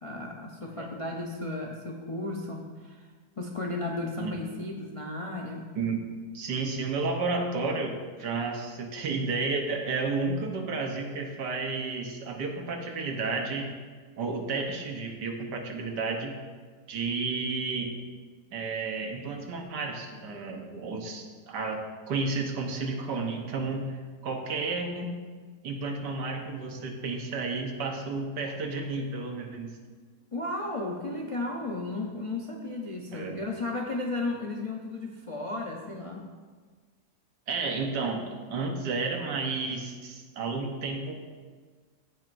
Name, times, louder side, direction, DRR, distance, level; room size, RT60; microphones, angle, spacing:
voice 1, 0.0-3.1 3.4-5.7 30.3-36.3, left 2 dB, 40° left, -1 dB, 0.4 m, -34 dB
voice 2, 6.3-13.7 14.2-16.3 16.9-18.0 18.5-23.8 24.2-25.2 25.6-29.7 33.1-33.4 37.5-41.1, right 3 dB, 80° right, 3 dB, 1.7 m, -32 dB
15.5 x 7.6 x 2.6 m, 1.5 s
omnidirectional pair, 1.8 m